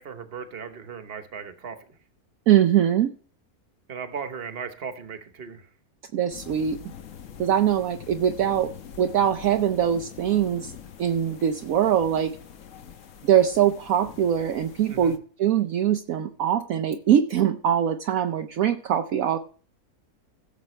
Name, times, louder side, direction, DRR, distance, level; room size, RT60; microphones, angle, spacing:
voice 1, 0.0-1.8 3.9-5.6 14.9-15.1, right 6 dB, 40° right, 8 dB, 1.3 m, -37 dB
voice 2, 2.5-3.1 6.1-6.8 7.4-8.7 9.0-10.7 11.0-12.3 13.2-19.4, right 10 dB, 70° right, 7 dB, 1.0 m, -22 dB
sound 1, 6.3-15.2, left 8 dB, 60° left, 1.2 m, -44 dB
16.5 x 7.3 x 3.2 m, 0.41 s
omnidirectional pair, 1.6 m